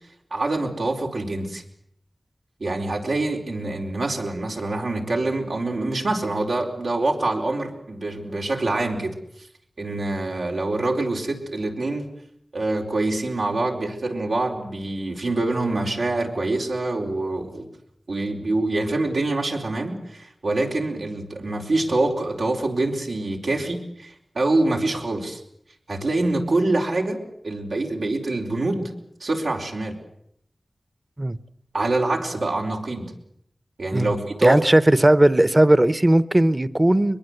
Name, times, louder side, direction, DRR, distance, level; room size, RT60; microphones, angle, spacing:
voice 1, 0.3-1.6 2.6-9.2 9.8-12.1 12.5-17.7 18.1-25.4 25.9-28.9 29.2-30.0 31.7-33.1 33.8-34.6, right 2 dB, 90° right, 0 dB, 4.5 m, -25 dB
voice 2, 34.4-37.2, right 1 dB, 25° right, 15 dB, 0.9 m, -17 dB
23.0 x 22.5 x 8.0 m, 0.72 s
wide cardioid pair, 75°, 0 cm